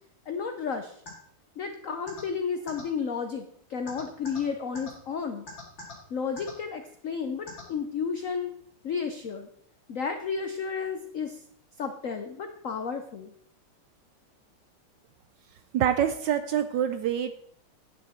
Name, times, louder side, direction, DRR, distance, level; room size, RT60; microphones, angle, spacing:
voice 1, 0.3-0.9 1.6-5.5 6.1-8.5 8.8-9.5 9.9-11.4 11.8-13.3, left 6 dB, 80° left, 6 dB, 0.7 m, -32 dB
sound 1, 1.1-1.2 2.1-2.2 2.7-2.8 3.9-4.4 4.8-4.9 5.5-5.9 6.4-6.5 7.5-7.6, left 3 dB, 60° left, 3.5 m, -40 dB
voice 2, 15.7-17.3, right 9 dB, 75° right, 10 dB, 1.0 m, -26 dB
9.1 x 8.5 x 4.2 m, 0.66 s
omnidirectional pair, 2.4 m